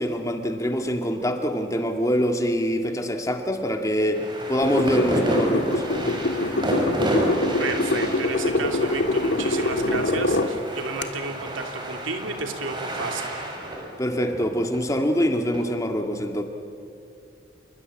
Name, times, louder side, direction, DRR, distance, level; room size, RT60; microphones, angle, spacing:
voice 1, 0.0-5.8 14.0-16.4, equal, 15° left, 5 dB, 1.8 m, -24 dB
sound 1, 4.1-15.6, right 1 dB, 25° right, 4.4 m, -30 dB
sound 2, 4.6-10.5 11.0-11.1, left 2 dB, 65° left, 1.9 m, -25 dB
voice 2, 7.6-13.3, right 3 dB, 85° right, 4 dB, 3.0 m, -32 dB
28.5 x 22.5 x 8.8 m, 2.5 s
head